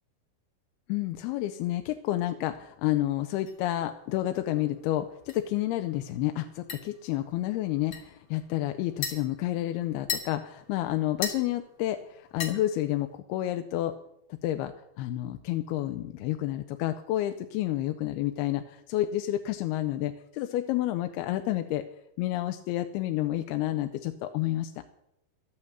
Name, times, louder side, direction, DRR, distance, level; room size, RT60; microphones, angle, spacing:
voice 1, 0.9-13.9 14.3-21.8 22.2-24.7, left 14 dB, 85° left, 8 dB, 2.6 m, -30 dB
sound 1, 3.4-13.2, left 6 dB, 45° left, 2.1 m, -41 dB
12.5 x 8.9 x 7.9 m, 0.81 s
omnidirectional pair, 4.4 m